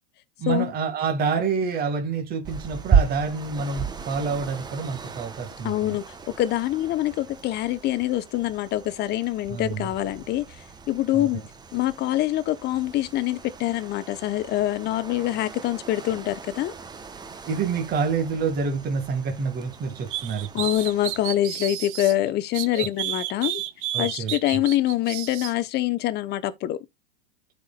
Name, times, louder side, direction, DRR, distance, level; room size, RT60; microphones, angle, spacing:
voice 1, 0.4-6.0 9.5-9.9 11.1-11.3 17.4-20.7 22.7-22.9 23.9-24.3, right 5 dB, 30° right, 2.0 m, -28 dB
sound 1, 2.4-21.4, right 6 dB, 15° right, 0.9 m, -34 dB
voice 2, 5.6-10.6 10.9-11.4 11.7-16.7 20.5-23.6 24.0-26.8, left 14 dB, 35° left, 0.9 m, -25 dB
sound 2, 20.1-22.1 22.5-25.5, right 14 dB, 55° right, 1.0 m, -31 dB
13.0 x 4.7 x 2.3 m
hypercardioid pair, 110°, 31 cm